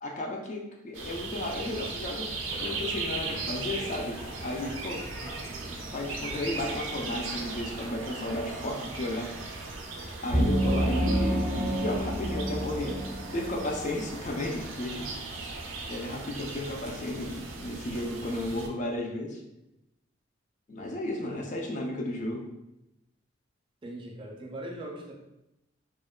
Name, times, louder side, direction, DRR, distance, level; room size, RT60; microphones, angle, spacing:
voice 1, 0.0-2.3 2.6-5.3 5.7-9.7 10.2-13.0 13.3-15.5 15.9-19.4 20.7-22.4, left 1 dB, 40° left, 1 dB, 0.3 m, -34 dB
sound 1, 0.9-18.7, right 3 dB, 90° right, 0.4 m, -38 dB
sound 2, 2.2-7.9, equal, 55° left, 1.1 m, -44 dB
sound 3, 10.3-13.9, equal, 80° left, 1.2 m, -28 dB
voice 2, 23.8-25.1, right 1 dB, 25° right, -1 dB, 0.4 m, -40 dB
2.9 x 2.1 x 2.2 m, 0.89 s
head